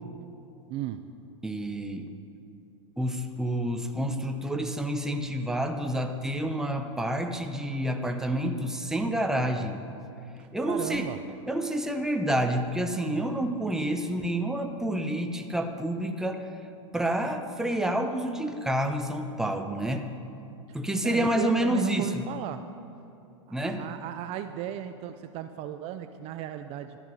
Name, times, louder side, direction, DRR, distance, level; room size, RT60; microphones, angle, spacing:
voice 1, 0.7-1.1 10.4-11.2 13.8-13.9 21.0-22.7 23.5-27.0, right 11 dB, 40° right, 9 dB, 0.5 m, -36 dB
voice 2, 1.4-2.1 3.0-9.8 10.5-11.2 11.5-16.5 16.9-20.1 20.7-22.2 23.5-23.9, right 1 dB, 5° right, 5 dB, 0.8 m, -29 dB
12.5 x 11.0 x 5.3 m, 2.8 s
hypercardioid pair, 115°, 16 cm